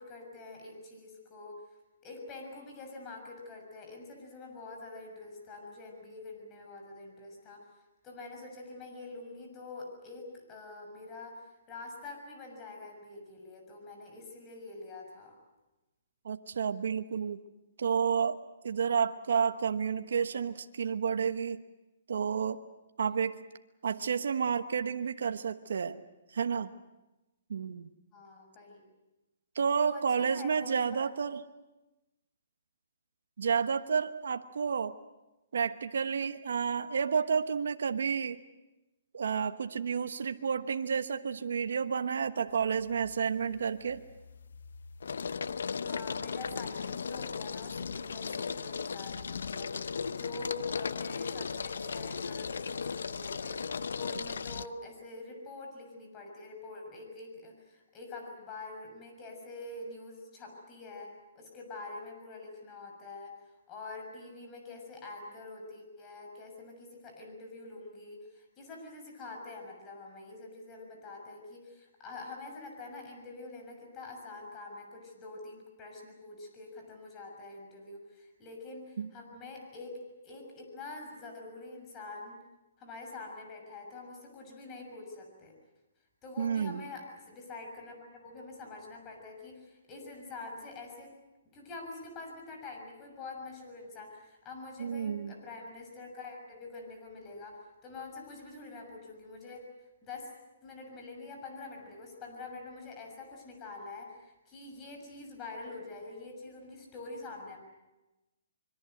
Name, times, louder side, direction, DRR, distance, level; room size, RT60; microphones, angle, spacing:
voice 1, 0.0-1.6 2.0-7.6 8.0-15.4 23.0-23.2 28.1-28.9 29.8-31.4 45.8-63.3 63.7-82.4 82.8-85.5 86.2-91.1 91.5-100.3 100.6-107.6, left 3 dB, 20° left, 2 dB, 6.6 m, -46 dB
voice 2, 16.2-17.4 17.8-18.4 18.6-21.6 22.1-22.6 23.0-23.4 23.8-26.0 26.3-26.7 27.5-27.9 29.5-31.4 33.4-34.9 35.5-38.4 39.1-44.0 79.0-79.1 86.4-86.8 94.8-95.3, right 6 dB, 75° right, 9 dB, 1.2 m, -30 dB
sound 1, 42.6-43.1 43.5-54.7, left 5 dB, 85° left, 0.8 m, -37 dB
25.5 x 23.0 x 8.0 m, 1.0 s
hypercardioid pair, 155°, 0 cm